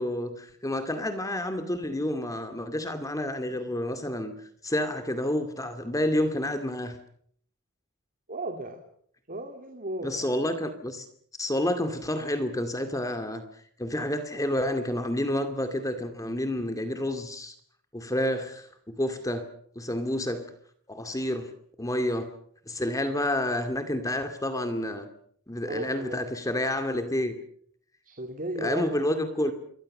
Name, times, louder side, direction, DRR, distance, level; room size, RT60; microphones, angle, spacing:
voice 1, 0.0-4.3 4.6-7.0 10.0-11.1 11.4-13.4 13.8-17.5 17.9-19.4 19.8-20.5 20.9-21.5 21.8-22.3 22.7-25.1 25.5-27.3 28.6-29.5, left 1 dB, 15° left, 8 dB, 2.3 m, -29 dB
voice 2, 8.3-8.8 9.3-10.4 18.3-18.4 22.0-22.2 25.7-26.2 28.0-29.0, right 1 dB, 40° right, 5 dB, 2.8 m, -35 dB
28.0 x 23.0 x 6.6 m, 0.64 s
head